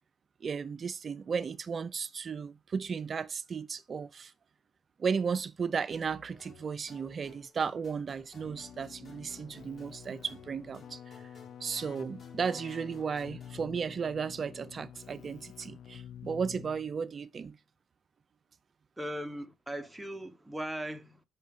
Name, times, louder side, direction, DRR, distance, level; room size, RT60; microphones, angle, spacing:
voice 1, 0.4-4.3 5.0-11.2 11.6-17.6, right 6 dB, 45° right, 0.4 m, -35 dB
sound 1, 5.9-13.6, left 3 dB, 50° left, 3.0 m, -57 dB
Keyboard (musical), 8.4-17.1, left 9 dB, 70° left, 0.3 m, -49 dB
voice 2, 19.0-21.2, equal, 5° right, 0.9 m, -38 dB
6.6 x 5.7 x 3.6 m
cardioid pair, 90°, 0 cm